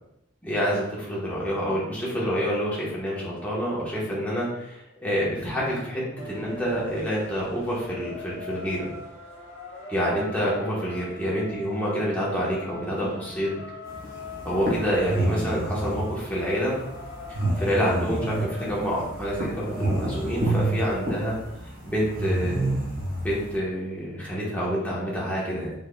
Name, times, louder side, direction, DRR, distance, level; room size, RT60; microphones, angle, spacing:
voice 1, 0.4-8.9 9.9-13.5 14.4-16.8 17.6-21.4 21.8-22.8 23.2-25.7, equal, 5° left, -6 dB, 1.1 m, -27 dB
sound 1, 6.2-20.4, left 1 dB, 70° left, 1.1 m, -42 dB
sound 2, 13.9-23.5, right 1 dB, 45° right, 0.9 m, -29 dB
4.3 x 3.5 x 2.2 m, 0.83 s
head